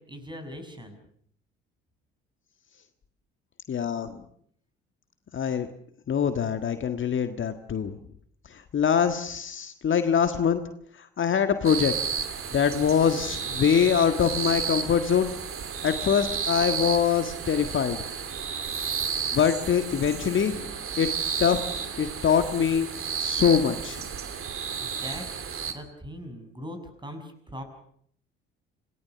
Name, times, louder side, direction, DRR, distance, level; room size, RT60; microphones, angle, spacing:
voice 1, 0.1-1.0 24.8-27.6, equal, 15° right, 7 dB, 6.8 m, -41 dB
voice 2, 3.7-4.2 5.3-5.7 6.1-8.0 8.5-10.6 10.9-11.9 12.5-15.4 15.8-18.0 19.3-20.7 21.0-21.1 21.4-22.9 23.2-24.1, left 7 dB, 40° left, 8 dB, 1.7 m, -24 dB
sound 1, 11.6-25.7, right 6 dB, 45° right, 2.9 m, -32 dB
27.5 x 19.0 x 7.0 m, 0.64 s
hypercardioid pair, 55°, 30 cm